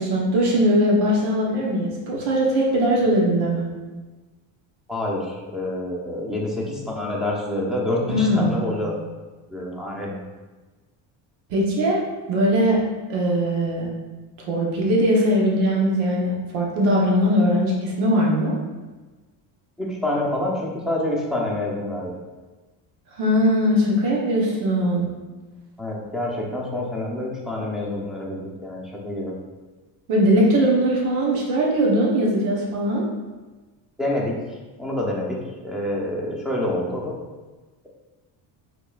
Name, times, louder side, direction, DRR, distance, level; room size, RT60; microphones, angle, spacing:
voice 1, 0.0-3.7 8.1-8.7 11.5-12.0 12.3-12.8 13.1-13.9 14.5-18.6 23.2-25.1 30.1-33.0, equal, 90° right, -3 dB, 1.3 m, -20 dB
voice 2, 4.9-8.9 9.5-10.2 19.8-22.2 25.8-29.3 34.0-34.4 34.8-37.1, left 1 dB, ahead, -3 dB, 0.7 m, -27 dB
5.2 x 4.0 x 2.5 m, 1.3 s
cardioid pair, 145°, 47 cm